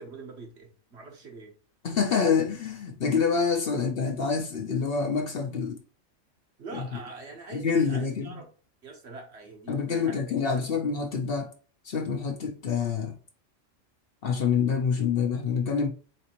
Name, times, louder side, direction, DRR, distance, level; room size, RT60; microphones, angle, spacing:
voice 1, 0.0-1.5 3.7-3.8 6.6-8.5 8.8-10.6, right 3 dB, 60° right, 1.3 m, -44 dB
voice 2, 1.8-5.8 6.7-6.9 7.5-8.4 9.7-11.5 11.8-13.2 14.2-15.9, left 6 dB, 55° left, 0.8 m, -26 dB
4.3 x 4.0 x 2.9 m
omnidirectional pair, 1.3 m